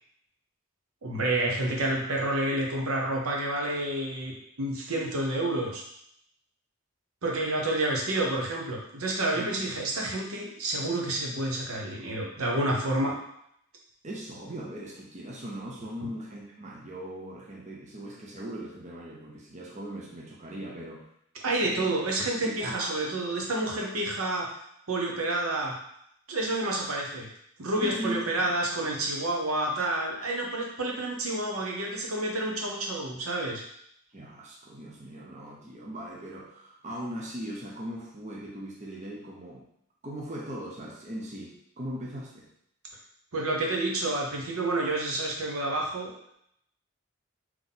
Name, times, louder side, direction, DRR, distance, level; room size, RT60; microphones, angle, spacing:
voice 1, 1.0-5.8 7.2-13.2 16.0-16.1 21.4-24.5 24.9-25.7 26.3-27.3 27.6-33.6 43.3-46.3, right 2 dB, 85° right, -1 dB, 0.9 m, -29 dB
voice 2, 9.3-9.7 14.0-21.1 21.6-21.9 22.2-22.9 27.8-28.5 34.1-39.6 40.0-42.5, equal, 35° right, -3 dB, 0.6 m, -39 dB
3.6 x 3.0 x 3.9 m, 0.72 s
head